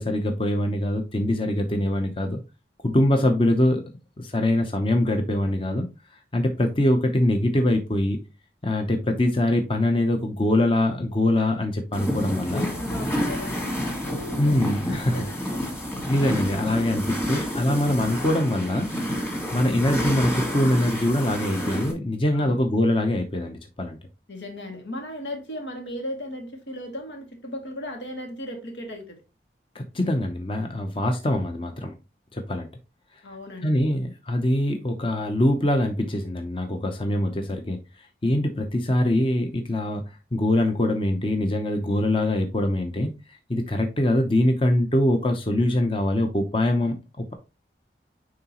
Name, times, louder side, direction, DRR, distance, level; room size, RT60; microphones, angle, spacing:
voice 1, 0.0-2.4 2.8-3.8 4.2-5.9 6.3-8.2 8.6-12.6 14.4-15.2 16.1-18.9 19.5-24.0 29.7-31.9 32.3-32.7 33.6-47.3, left 1 dB, 30° left, 0.7 m, -23 dB
sound 1, 11.9-21.9, equal, 15° left, 1.6 m, -29 dB
voice 2, 12.5-14.6 14.9-15.6 22.3-22.6 24.3-29.2 33.2-33.7, left 1 dB, 80° left, 2.2 m, -36 dB
9.5 x 3.8 x 3.0 m
head